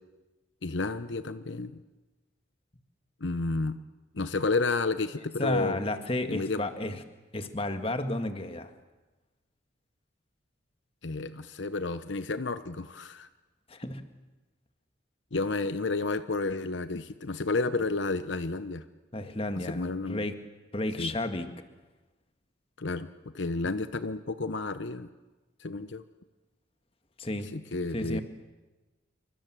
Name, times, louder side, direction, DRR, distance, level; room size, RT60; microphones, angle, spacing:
voice 1, 0.6-1.8 3.2-3.8 4.1-5.8 6.3-6.6 11.0-13.3 15.3-18.8 19.5-20.2 21.0-21.1 22.8-25.1 25.6-26.0 27.5-28.2, left 3 dB, 70° left, 12 dB, 0.9 m, -31 dB
voice 2, 5.4-7.0 7.3-8.7 13.7-14.1 19.1-20.3 20.7-21.5 27.2-27.5 27.9-28.2, left 1 dB, 30° left, 8 dB, 1.8 m, -32 dB
28.0 x 25.0 x 7.6 m, 1.2 s
head